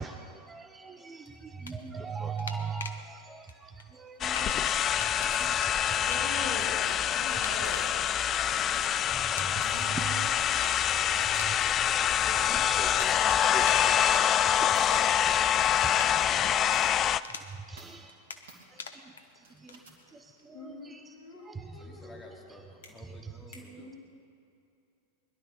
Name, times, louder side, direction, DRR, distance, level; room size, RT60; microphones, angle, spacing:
voice 1, 0.0-6.5 6.9-7.5 8.1-16.5 17.7-18.1 18.7-19.0 19.6-19.8 20.1-21.1 21.4-21.9 23.5-23.9, right 5 dB, 15° right, 7 dB, 0.9 m, -42 dB
sound 1, 1.3-3.0 3.5-17.8 18.1-20.4, left 5 dB, 75° left, 1.0 m, -46 dB
sound 2, 4.2-17.2, left 10 dB, 30° left, 0.4 m, -26 dB
sound 3, 5.3-5.5 6.7-7.1 7.6-7.9 8.6-8.9 9.6-9.9 10.5-10.7 11.3-11.8 12.0-12.4 13.0-13.2 13.8-14.1 14.7-15.0 15.4-15.8 16.2-16.3 16.7-16.9 17.8-18.1 18.5-18.7 19.4-20.1, right 3 dB, 65° right, 2.7 m, -53 dB
voice 2, 6.1-8.1 9.4-10.3 20.5-22.5 23.8-24.0, left 2 dB, 55° left, -1 dB, 3.5 m, -43 dB
voice 3, 21.7-24.0, left 1 dB, 15° left, 0 dB, 2.8 m, -55 dB
21.5 x 12.0 x 5.6 m, 2.6 s
figure-of-eight pair, 90°, 0 cm